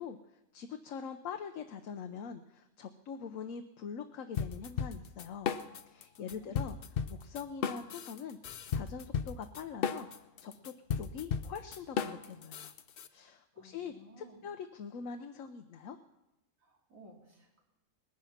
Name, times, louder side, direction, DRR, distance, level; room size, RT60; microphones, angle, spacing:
voice 1, 0.0-5.5 5.9-6.8 7.1-12.7 13.1-16.0, left 6 dB, 75° left, 6 dB, 1.1 m, -44 dB
sound 1, 4.4-6.0 6.3-13.1, left 6 dB, 55° left, 0.7 m, -35 dB
voice 2, 6.2-6.7 13.5-14.4 16.6-17.6, right 1 dB, 85° right, -1 dB, 3.2 m, -57 dB
20.0 x 9.9 x 5.8 m, 0.93 s
omnidirectional pair, 1.4 m